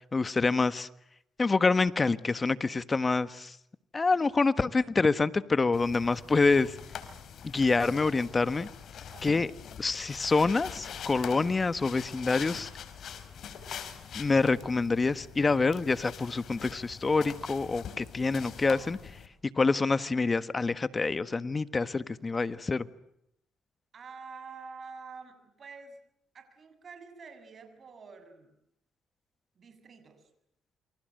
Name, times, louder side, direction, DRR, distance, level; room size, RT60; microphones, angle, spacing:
voice 1, 0.1-0.9 1.4-3.6 3.9-6.7 7.4-8.7 9.2-9.5 9.8-12.7 14.1-19.2 19.5-22.9, left 3 dB, 30° left, 14 dB, 1.4 m, -26 dB
sound 1, 5.7-19.3, left 8 dB, 65° left, 4.3 m, -44 dB
voice 2, 9.1-9.5 23.9-26.0 26.3-28.5 29.6-30.3, right 5 dB, 45° right, 9 dB, 7.2 m, -48 dB
28.5 x 25.5 x 7.8 m, 0.80 s
cardioid pair, 90°, 0 cm